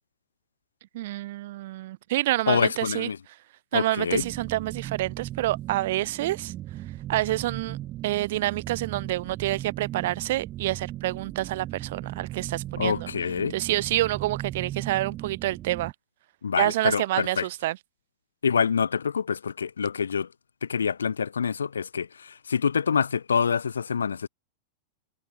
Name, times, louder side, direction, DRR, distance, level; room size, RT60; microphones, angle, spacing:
voice 1, 0.9-3.1 3.7-6.5 7.1-7.8 8.0-13.1 13.5-15.9 16.6-17.8, right 16 dB, 55° right, 0.3 m, -28 dB
voice 2, 2.5-3.2 3.7-4.2 12.8-13.5 16.4-17.5 18.4-20.3 20.6-24.3, left 6 dB, 70° left, 0.6 m, -26 dB
sound 1, 4.1-15.9, right 14 dB, 35° right, 1.2 m, -37 dB
figure-of-eight pair, 90°, 0 cm